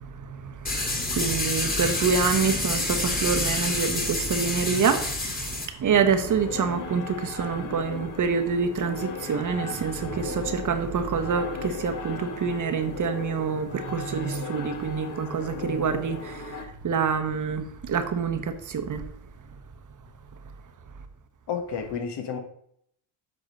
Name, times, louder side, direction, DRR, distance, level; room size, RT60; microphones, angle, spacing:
voice 1, 0.0-19.1, right 6 dB, 40° right, 1.0 m, -27 dB
sound 1, 0.7-5.7, left 2 dB, 20° left, 2.3 m, -28 dB
sound 2, 6.2-16.6, left 5 dB, 40° left, 1.2 m, -37 dB
voice 2, 21.5-22.4, left 6 dB, 55° left, 1.6 m, -31 dB
7.7 x 3.6 x 6.4 m
supercardioid pair, 75°, 47 cm